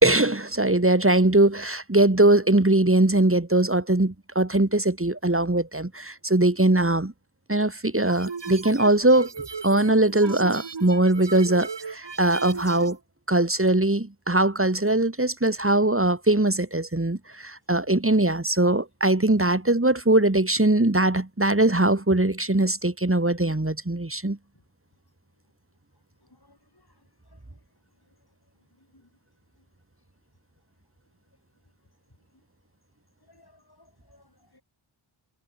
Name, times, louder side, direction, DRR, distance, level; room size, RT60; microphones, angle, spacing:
voice 1, 0.0-7.1 7.5-9.3 9.6-13.0 13.3-24.4, right 2 dB, 25° right, 2.4 m, -21 dB
sound 1, 8.1-13.0, right 5 dB, 55° right, 1.2 m, -36 dB
voice 2, 26.3-26.9 27.3-27.6 28.9-29.1 33.3-34.6, left 2 dB, 45° left, 7.3 m, -60 dB
wide cardioid pair, 40°, 50 cm